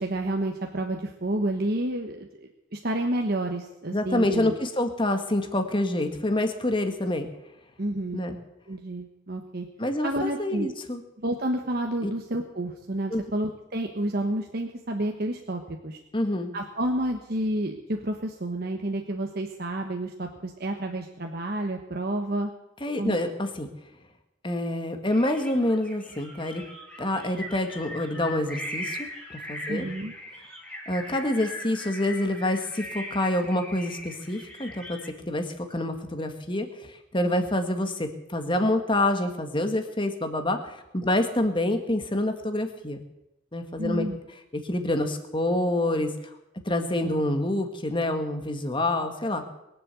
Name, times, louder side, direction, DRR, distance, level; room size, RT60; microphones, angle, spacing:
voice 1, 0.0-4.6 7.8-8.2 8.7-9.7 10.0-10.7 11.2-16.0 16.5-22.5 23.0-23.2 29.7-30.1 43.8-44.2, right 1 dB, 50° right, 2 dB, 1.3 m, -30 dB
voice 2, 3.9-7.3 8.1-8.4 9.8-11.0 12.0-12.1 13.1-13.2 16.1-16.5 22.8-23.7 24.4-26.6 27.0-29.9 30.9-35.0 35.3-36.7 37.1-43.0 43.5-44.1 44.7-46.1 46.6-49.4, left 1 dB, 25° left, 6 dB, 1.7 m, -27 dB
sound 1, 25.1-35.1, equal, 5° left, 3.7 m, -40 dB
22.0 x 7.7 x 8.2 m, 0.89 s
head